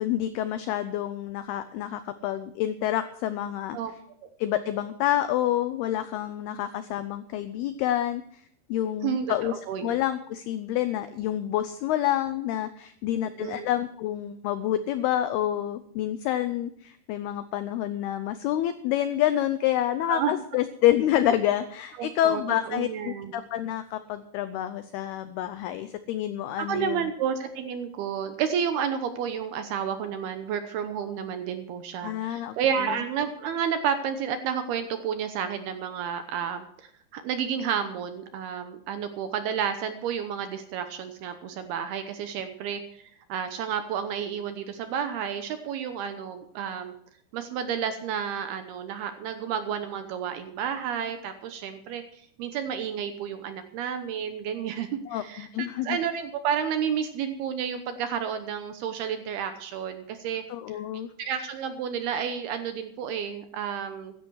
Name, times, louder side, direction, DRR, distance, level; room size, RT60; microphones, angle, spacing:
voice 1, 0.0-3.8 4.4-8.2 8.7-9.5 9.8-27.1 32.0-32.5 32.8-32.9 55.1-56.0 60.5-61.1, left 12 dB, 90° left, 11 dB, 2.2 m, -28 dB
voice 2, 9.0-10.0 13.2-13.7 20.1-20.3 22.0-23.4 26.6-46.9 47.3-60.4 61.2-64.1, right 8 dB, 75° right, 8 dB, 2.5 m, -31 dB
15.5 x 13.0 x 4.7 m, 0.64 s
omnidirectional pair, 5.4 m